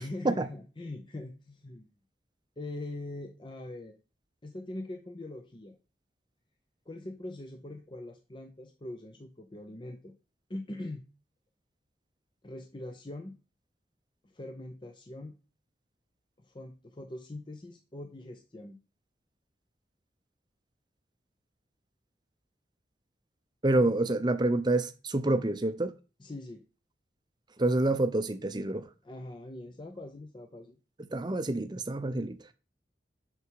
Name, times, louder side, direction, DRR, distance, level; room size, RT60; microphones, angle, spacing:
voice 1, 0.0-1.9 2.6-4.0 4.4-5.8 6.9-10.1 10.5-11.1 12.4-13.4 14.2-15.4 16.4-18.8 26.2-26.6 29.0-30.8, left 2 dB, 25° left, 0.6 m, -42 dB
voice 2, 23.6-25.9 27.6-28.9 31.0-32.4, right 2 dB, 25° right, 0.6 m, -27 dB
6.6 x 6.0 x 4.6 m
head